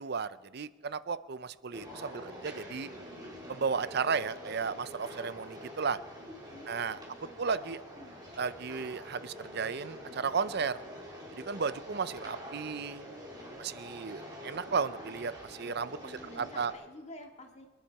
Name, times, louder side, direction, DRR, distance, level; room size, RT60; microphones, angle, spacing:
voice 1, 0.0-2.9 3.5-6.0 6.7-7.0 7.4-7.8 8.4-10.8 11.4-13.1 13.6-16.7, right 5 dB, 55° right, 15 dB, 0.6 m, -34 dB
sound 1, 1.7-16.7, equal, 20° right, 3.2 m, -46 dB
voice 2, 6.5-7.5 8.0-8.2 13.4-13.6 16.0-17.7, left 1 dB, 35° left, 3 dB, 2.1 m, -50 dB
27.0 x 10.5 x 4.7 m, 1.4 s
head